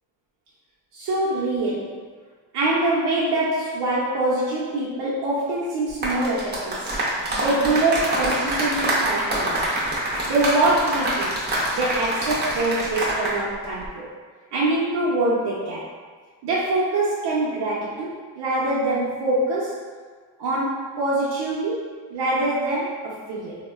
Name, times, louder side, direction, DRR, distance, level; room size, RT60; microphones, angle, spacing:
voice 1, 0.9-2.0 2.5-6.9 7.3-9.7 10.3-11.3 11.7-14.1 14.5-15.9 16.4-19.8 20.4-23.6, right 2 dB, 75° right, -8 dB, 0.6 m, -24 dB
sound 1, 5.9-13.4 13.6-13.9, right 1 dB, 25° right, 0.5 m, -25 dB
3.5 x 2.0 x 2.3 m, 1.5 s
cardioid pair, 150°, 40 cm